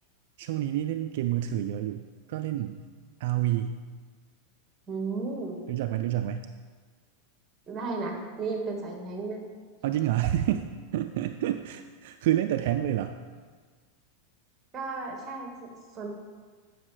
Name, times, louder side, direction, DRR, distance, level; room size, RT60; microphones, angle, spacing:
voice 1, 0.4-2.0 2.3-2.8 3.2-3.8 5.7-6.4 9.8-10.6 10.9-13.2, right 12 dB, 65° right, 8 dB, 0.3 m, -28 dB
voice 2, 4.9-5.6 7.7-9.4 14.7-16.1, right 3 dB, 20° right, 1 dB, 1.7 m, -34 dB
9.0 x 6.1 x 3.3 m, 1.5 s
hypercardioid pair, 125°, 0 cm